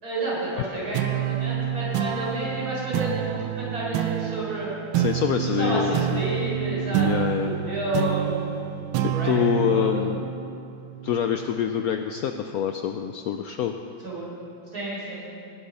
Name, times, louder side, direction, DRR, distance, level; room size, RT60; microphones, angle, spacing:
voice 1, 0.0-4.7 5.4-7.1 7.4-8.4 8.9-10.1 14.0-14.3 14.7-15.2, right 1 dB, 50° right, -6 dB, 4.8 m, -30 dB
sound 1, 0.9-11.8, right 10 dB, 85° right, 1.4 m, -28 dB
voice 2, 5.0-6.2 7.0-7.5 9.0-10.2 11.0-13.7, left 9 dB, 85° left, 6 dB, 0.8 m, -26 dB
18.5 x 8.3 x 5.6 m, 2.5 s
omnidirectional pair, 2.1 m